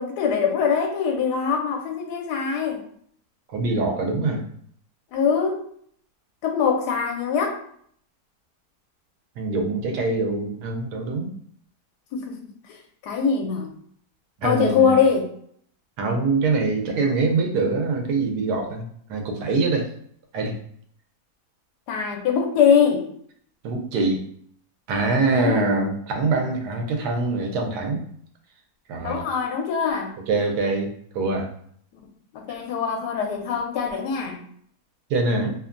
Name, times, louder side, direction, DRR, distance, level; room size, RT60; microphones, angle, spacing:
voice 1, 0.0-2.8 5.1-5.7 6.4-7.6 12.1-12.3 12.7-12.8 13.0-13.7 14.4-15.3 21.9-23.1 25.3-25.7 29.0-30.2 32.3-34.4, left 6 dB, 80° left, 2 dB, 1.2 m, -23 dB
voice 2, 3.5-4.4 9.4-11.3 14.4-14.9 16.0-19.9 20.3-20.6 23.6-24.2 24.9-28.0 28.9-29.2 30.3-31.5 35.1-35.5, right 3 dB, 80° right, 2 dB, 1.2 m, -24 dB
3.0 x 2.1 x 2.4 m, 0.62 s
omnidirectional pair, 1.7 m